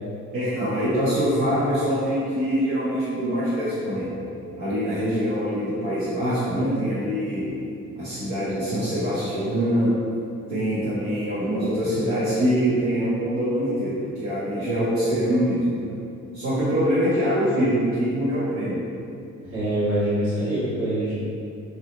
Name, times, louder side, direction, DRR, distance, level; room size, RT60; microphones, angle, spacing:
voice 1, 0.3-4.1 4.6-7.4 7.9-9.9 10.5-15.9 16.3-18.8, equal, 75° right, -13 dB, 0.8 m, -24 dB
voice 2, 19.4-21.1, right 1 dB, 60° right, -11 dB, 1.3 m, -24 dB
2.7 x 2.1 x 3.0 m, 2.5 s
cardioid pair, 90°, 30 cm